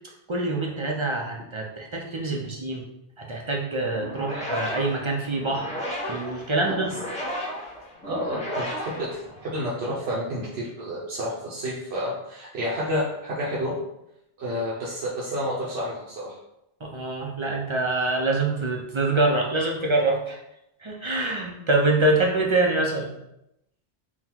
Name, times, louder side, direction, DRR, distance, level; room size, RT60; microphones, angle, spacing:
voice 1, 0.3-2.8 3.2-6.9 16.8-20.4 20.8-23.1, right 2 dB, 40° right, 0 dB, 0.5 m, -25 dB
sound 1, 4.0-9.8, equal, 10° left, 0.7 m, -34 dB
voice 2, 8.0-13.7 14.4-16.4, equal, 85° right, -6 dB, 1.0 m, -30 dB
3.8 x 2.3 x 4.3 m, 0.84 s
omnidirectional pair, 1.0 m